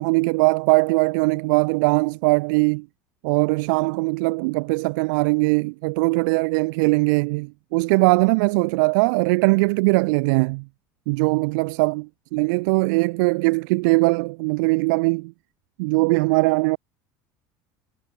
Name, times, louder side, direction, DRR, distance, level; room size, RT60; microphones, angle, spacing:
voice 1, 0.0-2.9 3.2-10.7 11.1-15.3 15.8-16.8, right 27 dB, 85° right, 0.6 m, -20 dB
cardioid pair, 140°, 10 cm